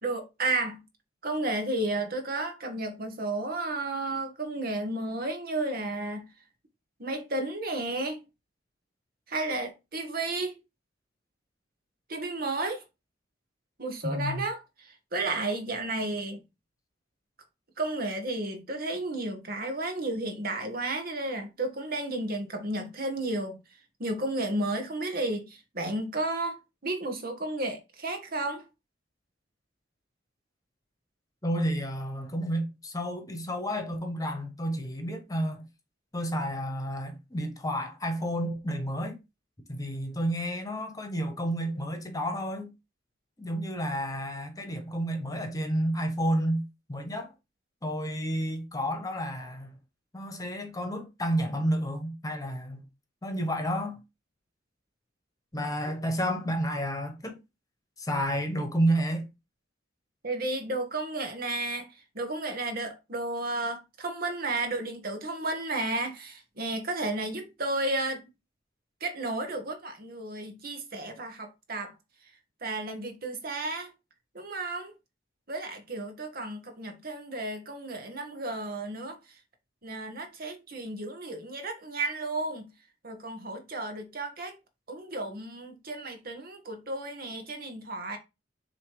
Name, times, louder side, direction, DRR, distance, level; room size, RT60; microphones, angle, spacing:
voice 1, 0.0-0.8 1.2-6.2 7.0-8.2 9.3-10.6 12.1-12.8 13.8-16.4 17.8-23.6 24.0-26.6 26.8-28.6 60.2-61.9 62.1-68.2 69.0-71.9 72.6-73.9 74.3-74.9 75.5-79.2 79.8-82.7 83.0-84.6 84.9-88.2, right 2 dB, 50° right, 1.4 m, -32 dB
voice 2, 14.0-14.4 31.4-35.6 36.1-39.2 39.7-42.7 43.4-46.6 46.9-47.3 47.8-49.8 50.1-52.9 53.2-54.0 55.5-57.4 58.0-59.2, equal, 20° left, 1.3 m, -30 dB
6.9 x 3.1 x 4.8 m
head